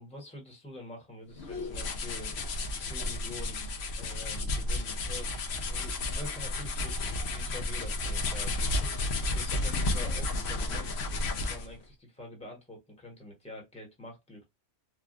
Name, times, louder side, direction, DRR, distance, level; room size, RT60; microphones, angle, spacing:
voice 1, 0.0-2.4 2.7-3.6 4.0-9.1 9.3-14.4, left 1 dB, 5° left, 1.0 m, -46 dB
sound 1, 1.4-11.8, left 2 dB, 65° left, 0.9 m, -32 dB
3.3 x 2.3 x 2.4 m
omnidirectional pair, 1.3 m